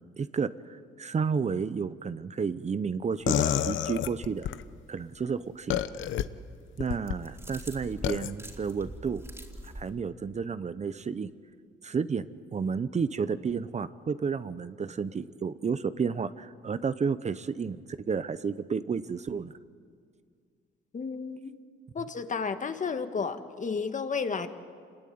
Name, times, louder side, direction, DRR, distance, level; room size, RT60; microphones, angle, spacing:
voice 1, 0.2-4.5 4.9-5.8 6.8-9.2 9.6-11.3 11.8-12.3 12.5-19.5, right 5 dB, 35° right, 13 dB, 0.8 m, -31 dB
sound 1, 3.3-4.6 5.7-6.2 6.8-7.2 8.0-8.3, left 10 dB, 75° left, 1.0 m, -28 dB
sound 2, 7.0-9.9, right 1 dB, 15° right, 3.6 m, -44 dB
voice 2, 20.9-21.5 21.9-24.5, left 5 dB, 40° left, 8 dB, 1.8 m, -32 dB
26.5 x 21.0 x 9.4 m, 2.1 s
cardioid pair, 90°, 20 cm